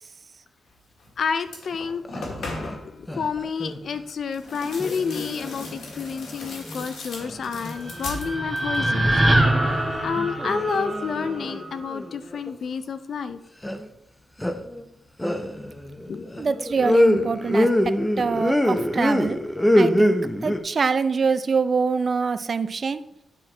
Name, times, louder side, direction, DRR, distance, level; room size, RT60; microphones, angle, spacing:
sound 1, 1.0-1.1 1.4-2.9 4.3-8.9 9.1-9.7, left 2 dB, 80° left, 1.9 m, -38 dB
voice 1, 1.2-2.0 2.4-9.1 10.0-13.4 16.1-16.3, left 6 dB, 55° left, 11 dB, 0.4 m, -29 dB
sound 2, 1.7-1.8 2.0-2.8 3.1-4.0 4.8-6.9 7.2-8.4 8.8-9.8 10.1-12.5 13.6-13.8 14.4-14.8 15.2-20.6, left 1 dB, 10° left, 0.6 m, -25 dB
sound 3, 7.5-11.8, right 1 dB, 15° right, 1.1 m, -24 dB
voice 2, 16.4-19.4 19.7-23.0, right 5 dB, 35° right, 13 dB, 0.4 m, -25 dB
9.7 x 4.6 x 4.3 m, 0.80 s
wide cardioid pair, 155°, 0 cm